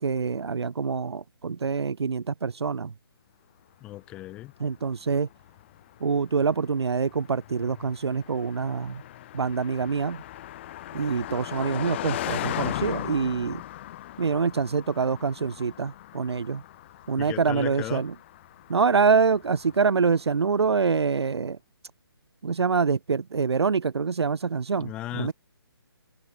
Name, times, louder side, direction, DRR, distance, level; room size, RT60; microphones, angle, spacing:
voice 1, 0.0-2.9 4.6-5.3 6.0-9.0 9.3-10.2 10.9-13.6 14.2-16.6 17.1-18.1 18.7-21.6 22.4-25.3, right 5 dB, 90° right, 0.8 m, -25 dB
voice 2, 3.8-4.5 17.2-18.1 24.8-25.3, left 15 dB, 5° left, 0.4 m, -36 dB
Car passing by, 4.1-20.6, left 14 dB, 25° left, 2.1 m, -38 dB
hypercardioid pair, 165°, 13 cm